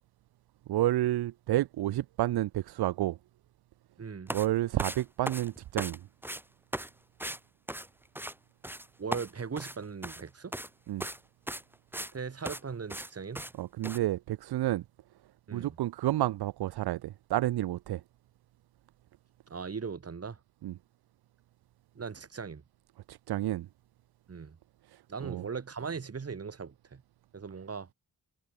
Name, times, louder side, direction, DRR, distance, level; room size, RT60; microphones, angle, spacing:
voice 1, 0.7-3.2 4.3-6.1 10.9-11.0 13.5-14.8 15.5-18.0 20.6-20.8 23.1-23.7 24.9-25.5, right 14 dB, 70° right, 0.5 m, -30 dB
voice 2, 4.0-4.3 9.0-10.5 12.1-13.4 15.5-15.8 19.5-20.4 22.0-22.6 24.3-24.6 25.1-27.0 27.3-27.9, right 5 dB, 35° right, 3.9 m, -39 dB
sound 1, 4.3-4.5 4.8-6.0 6.2-6.4 6.7-6.9 7.2-7.4 7.7-8.3 8.6-8.9 9.1-10.2 10.5-10.7 11.0-11.2 11.5-12.1 12.4-12.6 12.9-13.1 13.3-13.5 13.8-14.0, right 1 dB, 5° right, 2.2 m, -37 dB
wide cardioid pair, 180°, 40 cm